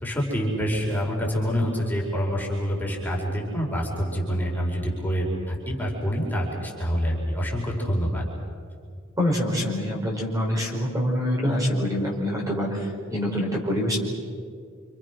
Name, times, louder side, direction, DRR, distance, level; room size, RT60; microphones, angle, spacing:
voice 1, 0.0-8.2, equal, 10° left, -3 dB, 5.0 m, -26 dB
voice 2, 9.2-14.0, equal, 15° right, -2 dB, 5.0 m, -25 dB
29.0 x 28.0 x 6.2 m, 2.2 s
head